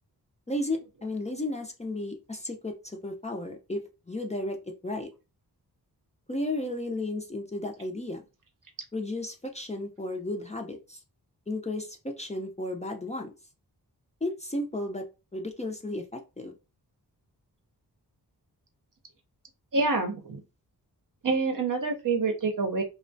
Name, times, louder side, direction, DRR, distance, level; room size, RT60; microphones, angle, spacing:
voice 1, 0.5-4.6 4.8-5.1 6.3-8.2 8.9-11.0 11.5-13.3 14.2-15.0 15.3-16.5, left 1 dB, 15° left, 1 dB, 0.5 m, -33 dB
voice 2, 19.7-20.4 21.2-22.8, right 3 dB, 55° right, 4 dB, 0.7 m, -27 dB
2.3 x 2.1 x 2.6 m, 0.28 s
cardioid pair, 55°, 39 cm